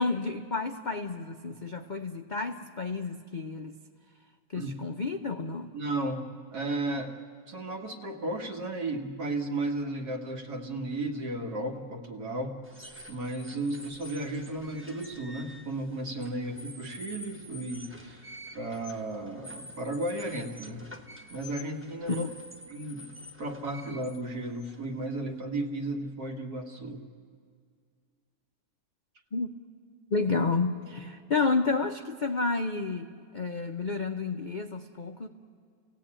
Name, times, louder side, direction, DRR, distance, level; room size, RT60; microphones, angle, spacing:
voice 1, 0.0-3.7 4.5-5.7 22.1-22.3 29.3-29.5 30.1-35.3, left 4 dB, 60° left, 5 dB, 0.5 m, -30 dB
voice 2, 5.7-7.1 7.5-12.6 13.1-18.3 18.5-20.8 21.3-22.3 22.7-23.1 23.4-27.0, right 2 dB, 65° right, 2 dB, 2.3 m, -34 dB
sound 1, 12.6-25.4, equal, 10° right, 0.9 m, -48 dB
30.0 x 17.0 x 8.8 m, 2.2 s
omnidirectional pair, 1.9 m